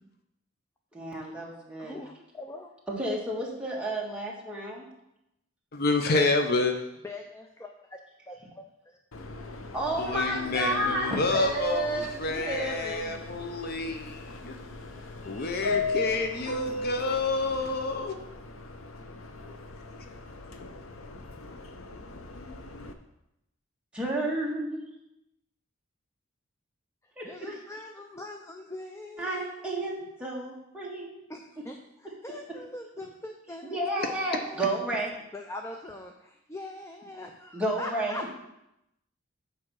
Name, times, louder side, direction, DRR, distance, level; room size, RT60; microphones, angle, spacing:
voice 1, 0.9-2.0 2.9-4.9 9.7-13.2 23.9-24.8 27.2-27.6 29.2-31.1 33.6-35.1 37.5-38.2, right 1 dB, 5° right, -4 dB, 1.8 m, -31 dB
voice 2, 1.8-2.7 6.7-8.0 8.3-9.0 27.2-29.7 31.3-34.7 35.3-38.3, left 2 dB, 15° left, 3 dB, 0.5 m, -42 dB
voice 3, 5.7-6.8 10.0-14.6 15.3-18.2, left 3 dB, 50° left, 5 dB, 0.7 m, -28 dB
Subway metro underground, 9.1-22.9, left 3 dB, 90° left, 0.8 m, -38 dB
7.5 x 5.0 x 6.3 m, 0.85 s
head